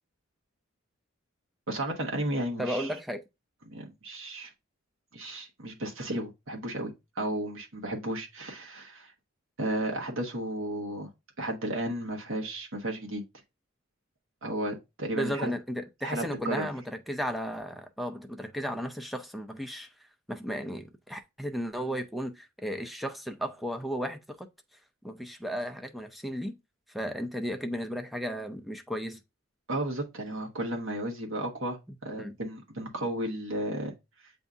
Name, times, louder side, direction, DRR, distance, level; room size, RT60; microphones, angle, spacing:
voice 1, 1.7-2.9 3.7-4.5 5.1-9.1 9.6-11.1 11.4-13.2 14.4-15.5 16.0-16.7 29.7-31.8 32.0-33.9, right 1 dB, 75° right, 1.2 m, -33 dB
voice 2, 2.6-3.2 15.1-19.9 20.3-24.5 25.0-26.6 26.9-29.2 32.2-32.4, equal, ahead, 0.4 m, -34 dB
7.9 x 2.7 x 2.4 m
head